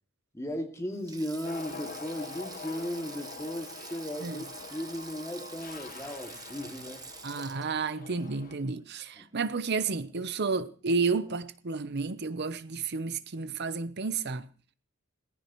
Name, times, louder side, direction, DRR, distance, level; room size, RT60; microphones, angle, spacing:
voice 1, 0.3-7.0 9.2-9.3, equal, 15° left, 2.3 m, -36 dB
Sink (filling or washing), 0.9-9.4 9.7-9.9 11.1-11.3, right 5 dB, 20° right, 1.1 m, -47 dB
sound 1, 1.4-8.6, left 6 dB, 45° left, 0.8 m, -45 dB
voice 2, 7.2-14.5, right 4 dB, 55° right, 0.8 m, -31 dB
19.0 x 15.0 x 3.1 m
head